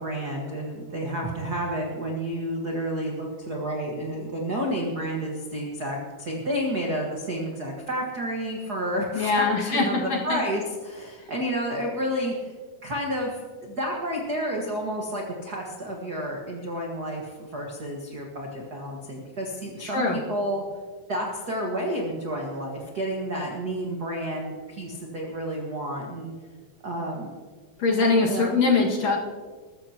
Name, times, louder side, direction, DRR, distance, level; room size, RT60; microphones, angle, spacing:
voice 1, 0.0-12.5 12.8-20.6 21.1-26.3 26.8-27.3 28.2-28.5, equal, 60° right, -1 dB, 1.0 m, -30 dB
voice 2, 9.1-9.8 10.1-10.4 19.8-20.2 27.8-29.2, left 4 dB, 50° left, -2 dB, 2.7 m, -22 dB
20.5 x 14.0 x 2.9 m, 1.5 s
omnidirectional pair, 4.3 m